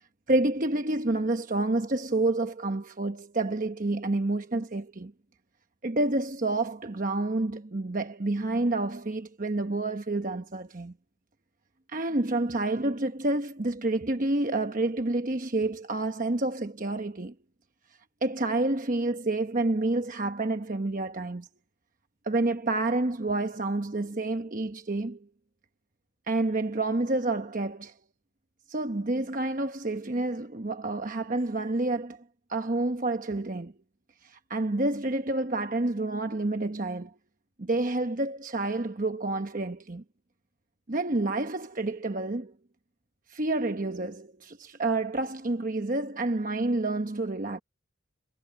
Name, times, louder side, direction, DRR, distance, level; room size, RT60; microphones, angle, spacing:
voice 1, 0.3-5.1 5.8-10.9 11.9-17.3 18.2-21.5 22.2-25.3 26.3-27.9 28.7-32.2 32.5-33.7 34.2-37.1 37.6-40.0 40.9-42.5 43.3-47.6, right 2 dB, 40° right, 1.0 m, -29 dB
head